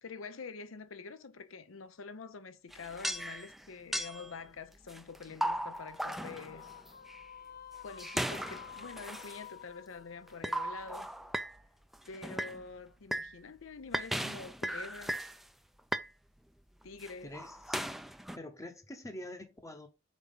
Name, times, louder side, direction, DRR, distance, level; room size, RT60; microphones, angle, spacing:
voice 1, 0.0-6.6 7.8-11.1 12.1-15.2 16.8-17.3, left 4 dB, 90° left, 0.7 m, -46 dB
sound 1, 2.7-3.6 3.9-4.3 4.9-7.2 7.9-9.4 10.3-11.6 11.9-12.6 13.1-13.3 13.9-15.4 15.8-16.1 16.8-18.4, right 1 dB, ahead, 0.4 m, -37 dB
sound 2, 6.1-11.5, left 8 dB, 50° left, 0.6 m, -51 dB
voice 2, 17.2-17.9 18.3-19.9, left 1 dB, 15° left, 0.8 m, -46 dB
5.3 x 4.6 x 5.4 m
head